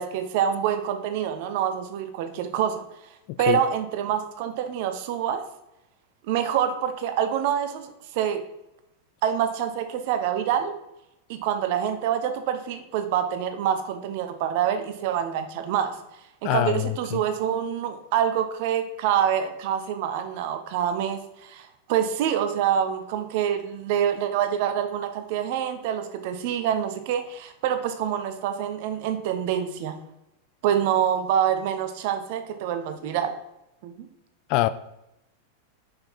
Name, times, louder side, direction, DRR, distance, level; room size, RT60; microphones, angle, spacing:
voice 1, 0.0-2.8 3.4-5.4 6.3-8.4 9.2-10.7 11.3-16.0 16.4-30.0 30.6-33.3 33.8-34.1, right 9 dB, 50° right, 0.8 m, -26 dB
voice 2, 3.3-3.6 16.4-17.2 34.5-34.7, left 16 dB, 45° left, 0.3 m, -24 dB
5.7 x 5.2 x 4.4 m
figure-of-eight pair, 90°, 0 cm